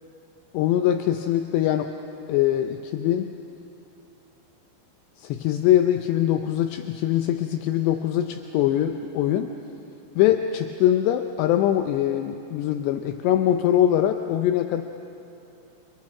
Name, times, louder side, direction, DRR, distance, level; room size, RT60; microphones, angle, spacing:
voice 1, 0.5-1.9 2.3-3.3 5.2-9.5 10.2-14.8, left 11 dB, 80° left, 6 dB, 2.7 m, -22 dB
29.0 x 28.0 x 4.8 m, 2.8 s
omnidirectional pair, 5.2 m